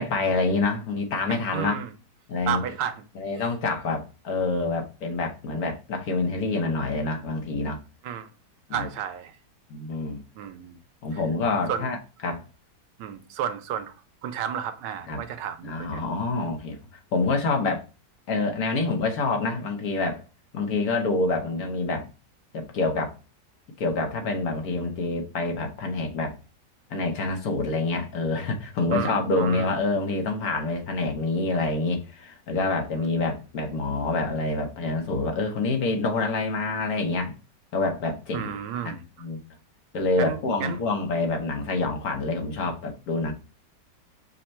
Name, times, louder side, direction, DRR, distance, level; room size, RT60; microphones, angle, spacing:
voice 1, 0.0-1.7 2.3-2.6 3.1-7.8 8.7-8.9 9.7-10.2 11.0-12.0 12.2-12.4 15.1-15.2 15.6-16.8 17.1-17.8 18.3-20.2 20.5-22.1 22.5-23.1 23.8-26.3 26.9-37.3 37.7-38.6 38.8-39.4 39.9-43.3, left 3 dB, 60° left, 1.3 m, -27 dB
voice 2, 1.3-1.9 2.5-3.0 8.0-8.3 8.7-9.3 10.4-10.8 11.1-11.2 11.7-11.9 13.0-13.9 14.2-16.0 28.9-29.7 38.3-39.0 40.2-40.8, right 9 dB, 85° right, 1.3 m, -32 dB
5.1 x 2.1 x 4.3 m
omnidirectional pair, 1.9 m